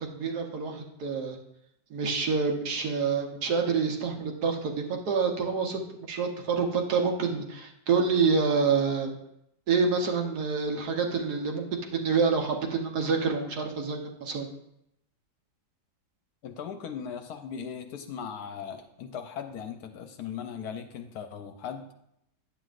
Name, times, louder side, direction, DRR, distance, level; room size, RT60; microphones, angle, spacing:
voice 1, 0.0-1.4 1.9-4.7 5.0-5.8 6.1-9.1 9.7-11.6 11.9-14.5, right 5 dB, 65° right, 2 dB, 1.5 m, -27 dB
voice 2, 16.4-21.9, left 7 dB, 70° left, 7 dB, 1.1 m, -38 dB
10.5 x 7.9 x 2.5 m, 0.77 s
omnidirectional pair, 1.9 m